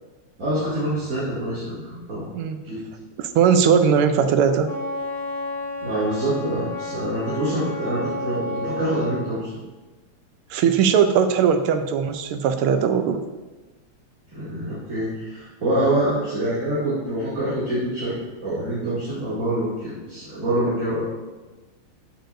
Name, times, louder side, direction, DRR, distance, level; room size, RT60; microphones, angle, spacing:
voice 1, 0.4-2.2 2.6-2.8 5.8-9.5 14.3-18.2 18.4-21.0, right 1 dB, 40° right, -11 dB, 2.9 m, -25 dB
voice 2, 3.2-4.7 10.5-13.2, right 7 dB, 85° right, 8 dB, 1.6 m, -19 dB
Wind instrument woodwind instrument, 4.6-9.2, left 2 dB, 35° left, 2.3 m, -31 dB
14.0 x 6.6 x 2.6 m, 1.3 s
omnidirectional pair, 2.3 m